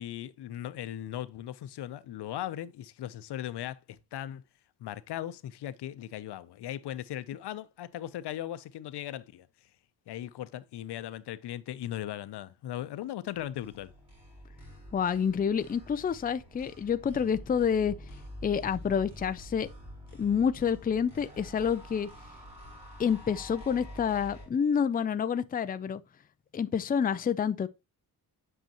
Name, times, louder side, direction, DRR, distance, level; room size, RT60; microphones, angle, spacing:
voice 1, 0.0-4.4 4.8-9.5 10.1-13.9, left 12 dB, 90° left, 0.7 m, -38 dB
sound 1, 13.3-24.5, equal, 15° right, 5.1 m, -47 dB
voice 2, 14.9-17.9 18.4-19.7 20.2-22.1 23.0-26.0 26.5-27.7, left 7 dB, 25° left, 0.4 m, -28 dB
7.9 x 6.4 x 2.9 m
wide cardioid pair, 145°, 39 cm